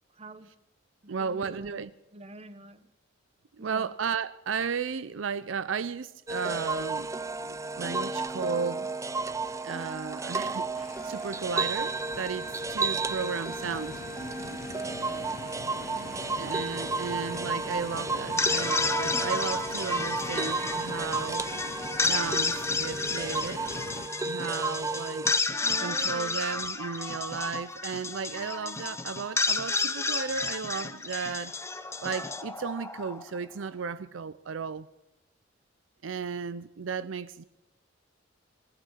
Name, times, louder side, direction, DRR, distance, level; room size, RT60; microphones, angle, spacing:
voice 1, 0.1-0.5 1.0-2.9 3.6-3.9 15.9-16.5 25.6-26.4, right 2 dB, 35° right, 1.0 m, -46 dB
voice 2, 1.1-1.9 3.6-7.1 7.4-8.9 9.6-14.0 16.4-21.6 22.0-23.7 24.2-25.3 25.8-31.5 32.0-34.9 36.0-37.4, right 6 dB, 80° right, 0.5 m, -34 dB
sound 1, 6.3-25.4, right 3 dB, 15° right, 0.5 m, -33 dB
sound 2, 10.7-24.1, left 5 dB, 50° left, 0.4 m, -44 dB
sound 3, 18.2-33.4, left 3 dB, 15° left, 0.8 m, -31 dB
18.5 x 12.0 x 5.8 m
head